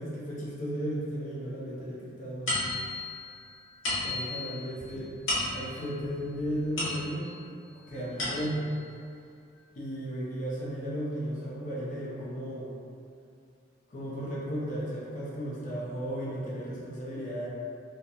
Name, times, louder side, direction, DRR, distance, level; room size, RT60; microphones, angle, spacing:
voice 1, 0.0-2.6 4.0-5.2 5.5-7.4 7.9-8.7 9.8-12.7 13.9-17.5, equal, 40° left, -7 dB, 0.5 m, -35 dB
sound 1, 2.5-7.5 7.9-8.8, left 2 dB, 80° left, 0.8 m, -34 dB
2.8 x 2.1 x 2.4 m, 2.4 s
head